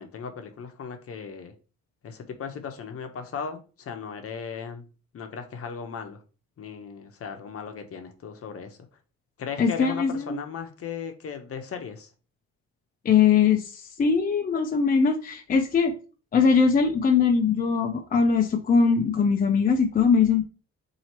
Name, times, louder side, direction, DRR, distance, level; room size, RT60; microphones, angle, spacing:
voice 1, 0.0-1.5 2.0-4.8 5.1-6.2 6.6-8.8 9.4-12.1, left 6 dB, 50° left, 6 dB, 0.8 m, -37 dB
voice 2, 9.6-10.4 13.0-15.9 16.3-20.4, left 5 dB, 30° left, 3 dB, 0.5 m, -21 dB
2.9 x 2.8 x 4.2 m, 0.35 s
cardioid pair, 90°, 30 cm